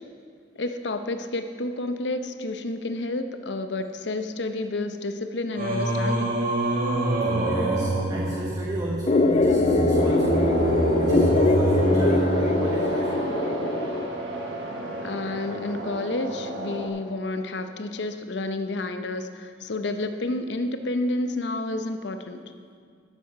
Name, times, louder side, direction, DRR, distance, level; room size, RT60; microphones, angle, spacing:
voice 1, 0.5-6.3 15.0-22.4, left 2 dB, 75° left, 8 dB, 0.8 m, -30 dB
Singing, 5.6-12.9, right 1 dB, 50° right, 1.7 m, -25 dB
voice 2, 7.4-13.4, right 1 dB, 20° right, -2 dB, 0.9 m, -34 dB
sound 1, 9.1-14.1, left 3 dB, 35° left, 0.4 m, -23 dB
sound 2, 9.9-16.9, right 2 dB, 75° right, 1.4 m, -31 dB
12.5 x 8.3 x 5.0 m, 2.1 s
head